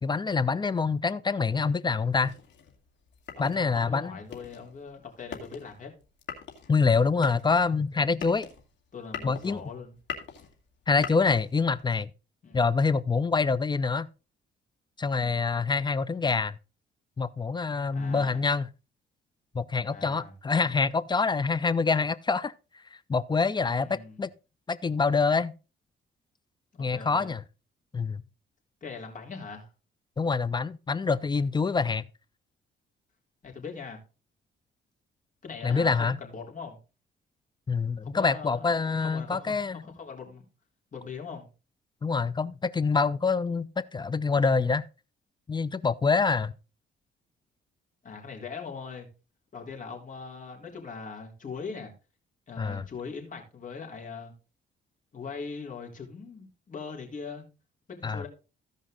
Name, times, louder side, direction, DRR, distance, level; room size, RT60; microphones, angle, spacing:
voice 1, 0.0-2.4 3.4-4.2 6.7-8.5 9.2-9.6 10.9-12.1 12.5-14.1 15.0-16.6 17.2-18.7 19.5-22.5 23.1-24.3 24.7-25.5 26.8-27.4 27.9-28.2 30.2-32.0 35.6-36.2 37.7-39.8 42.0-44.8 45.5-46.5 52.6-52.8 58.0-58.2, left 4 dB, 20° left, 0.5 m, -26 dB
sound 1, 2.2-11.9, left 7 dB, 65° left, 2.4 m, -43 dB
voice 2, 3.3-5.9 8.9-10.0 12.4-12.6 15.1-15.4 17.9-18.4 19.9-20.3 23.8-24.2 26.7-27.3 28.8-29.7 33.4-34.0 35.4-36.8 38.0-40.4 40.9-41.5 48.0-49.1 49.5-51.9 52.5-54.3 55.1-57.4 57.9-58.3, left 5 dB, 40° left, 3.6 m, -41 dB
15.0 x 5.3 x 3.8 m
cardioid pair, 90°, 20 cm